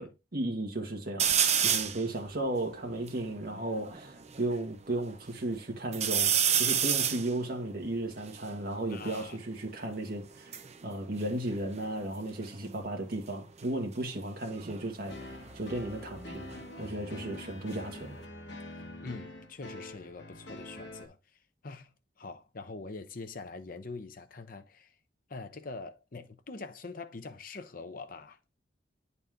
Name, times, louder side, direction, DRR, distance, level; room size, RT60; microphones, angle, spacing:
voice 1, 0.0-16.5 16.8-18.1, right 1 dB, 60° right, 1.6 m, -35 dB
sound 1, 1.2-2.0 2.6-2.7 2.9-4.4 4.9-5.5 5.9-9.3 10.2-12.1 12.4-12.9 14.5-17.1 17.5-18.2, right 8 dB, 40° right, 0.7 m, -31 dB
voice 2, 8.9-9.4 18.7-21.2 21.6-24.9 25.3-28.4, left 3 dB, 50° left, 0.8 m, -44 dB
sound 2, 15.1-21.1, left 2 dB, 75° left, 1.2 m, -45 dB
9.1 x 4.2 x 3.6 m
head